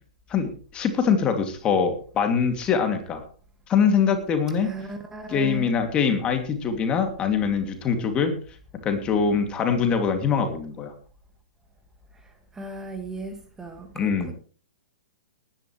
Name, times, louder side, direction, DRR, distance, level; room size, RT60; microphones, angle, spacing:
voice 1, 0.3-3.2 3.7-4.7 5.3-8.3 8.8-10.9 13.9-14.3, left 6 dB, 25° left, 2.6 m, -23 dB
voice 2, 4.6-5.7 12.6-14.3, right 2 dB, 10° right, 2.0 m, -36 dB
20.0 x 10.5 x 3.2 m
figure-of-eight pair, 110°, 4 cm